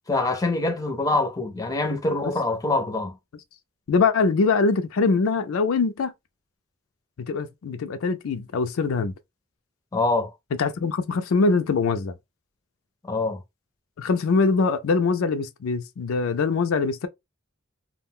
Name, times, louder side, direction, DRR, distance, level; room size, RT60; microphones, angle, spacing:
voice 1, 0.1-3.1 9.9-10.3 13.0-13.4, left 2 dB, 15° left, 0.5 m, -24 dB
voice 2, 3.9-6.1 7.2-9.1 10.6-12.1 14.0-17.1, left 4 dB, 75° left, 0.4 m, -23 dB
2.3 x 2.1 x 3.5 m
head